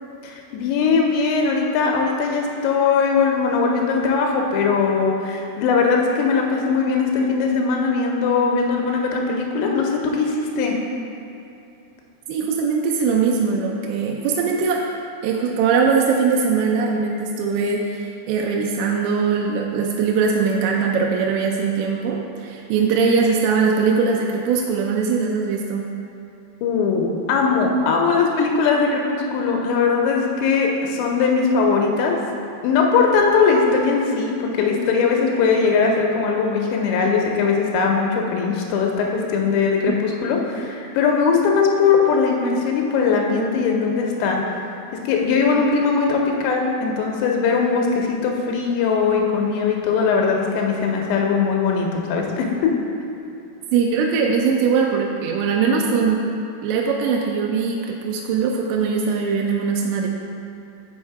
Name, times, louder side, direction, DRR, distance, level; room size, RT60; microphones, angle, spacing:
voice 1, 0.2-10.8 26.6-32.2 32.6-44.4 44.9-52.7, left 5 dB, 85° left, 1 dB, 3.1 m, -20 dB
voice 2, 12.3-14.8 15.2-25.9 53.7-56.3 56.6-60.1, right 5 dB, 85° right, -1 dB, 2.7 m, -21 dB
6.3 x 5.6 x 4.6 m, 2.8 s
omnidirectional pair, 5.1 m